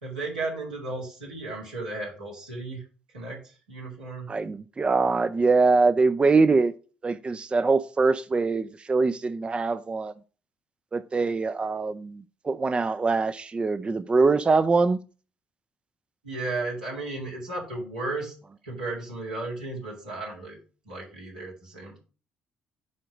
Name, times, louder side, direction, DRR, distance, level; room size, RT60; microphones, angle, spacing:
voice 1, 0.0-2.8 3.1-4.3 16.2-18.3 18.6-20.6 20.8-22.0, right 2 dB, 80° right, 2.5 m, -34 dB
voice 2, 4.3-6.7 7.0-10.1 10.9-15.0, right 4 dB, 25° right, 0.5 m, -23 dB
9.5 x 3.8 x 6.3 m
figure-of-eight pair, 45°, 4 cm